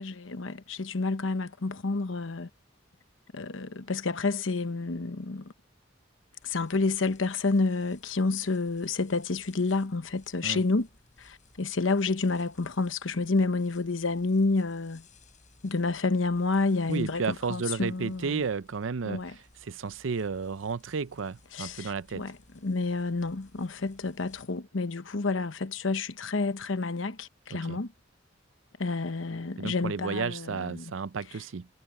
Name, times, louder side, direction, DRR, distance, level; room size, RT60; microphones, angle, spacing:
voice 1, 0.0-2.5 3.3-5.5 6.4-10.9 11.2-15.0 15.6-18.4 19.0-19.3 21.5-22.4 22.6-27.9 28.8-30.9, left 3 dB, 90° left, 1.0 m, -29 dB
sound 1, 6.4-24.4, left 3 dB, 40° left, 7.0 m, -61 dB
voice 2, 16.9-19.2 19.6-22.2 27.5-27.8 29.6-31.7, right 5 dB, 85° right, 0.6 m, -32 dB
head